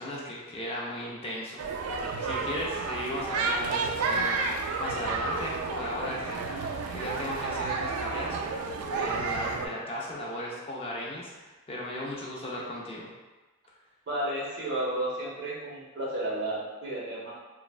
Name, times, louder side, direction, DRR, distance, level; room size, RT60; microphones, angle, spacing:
voice 1, 0.0-1.6 2.2-13.1, left 1 dB, 25° left, -4 dB, 0.4 m, -36 dB
sound 1, 1.6-9.7, right 4 dB, 85° right, 0.3 m, -31 dB
voice 2, 14.1-17.3, right 1 dB, 55° right, -6 dB, 0.9 m, -32 dB
3.0 x 2.2 x 2.4 m, 1.1 s
head